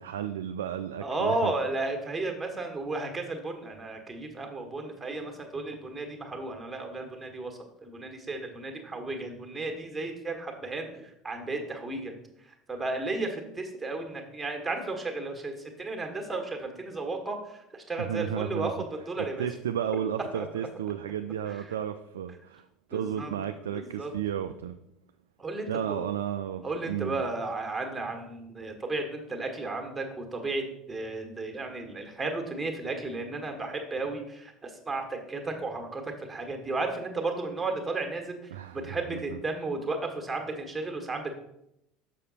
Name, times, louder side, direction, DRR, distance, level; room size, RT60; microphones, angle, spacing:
voice 1, 0.0-1.5 18.0-18.7 19.4-22.6 22.9-24.8 25.7-27.2 38.5-39.2, right 9 dB, 75° right, 7 dB, 0.3 m, -33 dB
voice 2, 1.0-12.1 12.4-19.5 20.3-20.4 21.5-21.6 22.9-23.3 23.7-24.1 25.4-26.1 26.6-41.3, right 2 dB, 15° right, 3 dB, 1.5 m, -34 dB
6.6 x 5.8 x 4.1 m, 0.82 s
figure-of-eight pair, 65°, 0 cm